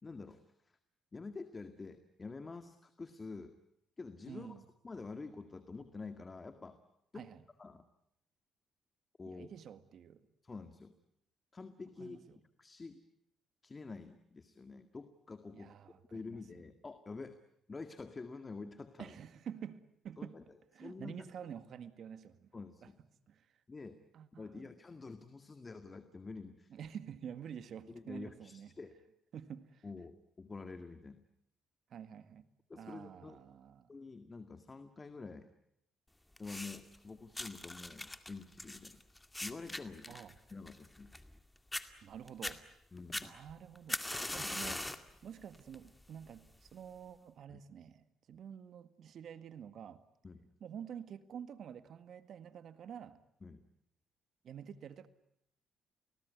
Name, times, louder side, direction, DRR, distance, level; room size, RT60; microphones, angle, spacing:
voice 1, 0.0-0.8 1.1-3.5 4.0-4.5 4.8-6.8 7.1-7.3 7.6-7.8 9.2-9.5 10.4-10.9 11.5-12.2 12.6-13.0 13.6-15.7 16.1-17.4 17.7-19.1 20.2-20.4 20.8-21.3 22.5-23.0 23.7-24.0 24.4-26.7 27.9-29.0 29.8-31.2 32.7-33.4 33.9-35.5 36.4-39.0 39.4-40.2 40.5-41.1 42.9-43.4 44.3-44.5 47.5-47.6 50.2-50.5 53.4-53.6, left 4 dB, 30° left, 1.9 m, -48 dB
voice 2, 4.2-4.6 7.1-7.4 9.2-10.2 12.0-12.4 15.5-16.6 19.0-20.4 20.7-22.5 22.8-22.9 23.3-23.5 24.1-24.7 26.7-28.7 29.3-29.9 31.9-32.5 32.7-33.9 40.1-40.3 42.0-42.6 43.2-44.8 45.2-50.0 50.6-53.2 54.4-55.1, right 8 dB, 60° right, 1.8 m, -49 dB
Light a match, 36.4-37.0 37.4-41.4 41.7-41.9 42.3-42.6 43.1-45.1 45.5-45.9 46.7-46.8, left 1 dB, 10° left, 2.1 m, -41 dB
30.0 x 19.0 x 9.5 m
supercardioid pair, 70°, 0 cm